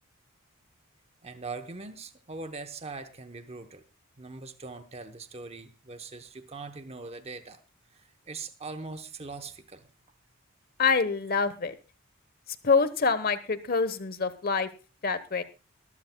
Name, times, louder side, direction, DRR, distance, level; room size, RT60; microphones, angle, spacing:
voice 1, 1.2-3.8 4.2-7.6 7.9-9.9, right 3 dB, 30° right, 8 dB, 0.9 m, -41 dB
voice 2, 10.8-11.8 12.6-14.7 15.0-15.4, left 4 dB, 45° left, 14 dB, 1.0 m, -26 dB
21.5 x 13.5 x 2.2 m, 0.31 s
head